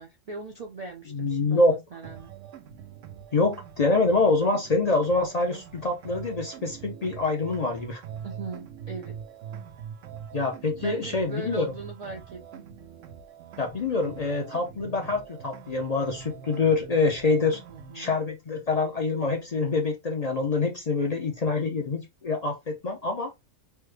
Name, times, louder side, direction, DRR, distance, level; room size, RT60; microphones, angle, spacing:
voice 1, 0.0-2.3 8.2-9.2 10.8-12.6 17.7-18.1, right 3 dB, 55° right, 0.4 m, -40 dB
voice 2, 1.1-1.8 3.3-8.0 10.3-11.7 13.6-17.6 17.9-23.3, left 3 dB, 45° left, 0.6 m, -25 dB
sound 1, 2.0-18.0, right 8 dB, 90° right, 1.0 m, -43 dB
3.3 x 2.2 x 3.2 m
omnidirectional pair, 1.3 m